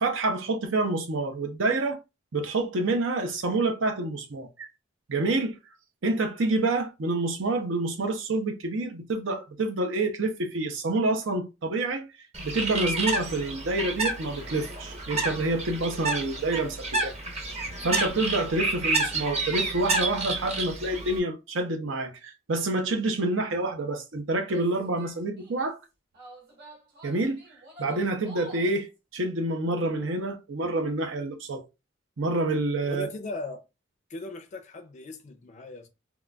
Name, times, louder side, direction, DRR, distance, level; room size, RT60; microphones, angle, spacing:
voice 1, 0.0-2.0 2.3-4.7 5.1-5.6 6.0-12.0 12.4-17.1 17.8-25.8 27.0-27.4 27.8-28.9 29.1-31.6 32.2-33.1, right 2 dB, 85° right, 0.7 m, -27 dB
Bird, 12.3-21.2, right 3 dB, 35° right, 0.7 m, -30 dB
Female speech woman speaking / Yell, 24.4-25.7 26.1-28.8, right 1 dB, 60° right, 1.4 m, -48 dB
voice 2, 32.8-33.6 34.1-35.9, left 3 dB, 40° left, 0.4 m, -38 dB
3.8 x 2.3 x 2.2 m
head